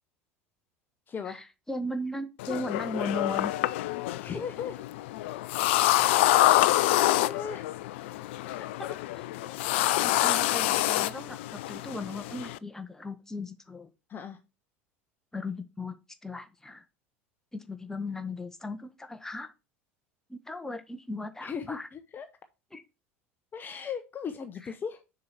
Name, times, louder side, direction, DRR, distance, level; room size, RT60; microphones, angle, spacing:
voice 1, 1.1-1.4 4.2-4.8 5.8-7.7 8.4-8.7 9.1-9.8 14.1-14.4 21.4-22.3 23.5-25.0, left 6 dB, 25° left, 9 dB, 0.7 m, -38 dB
voice 2, 1.7-3.5 8.8-9.2 9.8-13.9 15.3-16.0 16.2-16.8 17.5-19.5 20.3-21.9 22.7-22.8, left 2 dB, 5° left, 8 dB, 1.0 m, -37 dB
sound 1, 2.4-12.6, left 16 dB, 60° left, 0.4 m, -27 dB
6.8 x 5.0 x 4.3 m, 0.28 s
figure-of-eight pair, 70°, 7 cm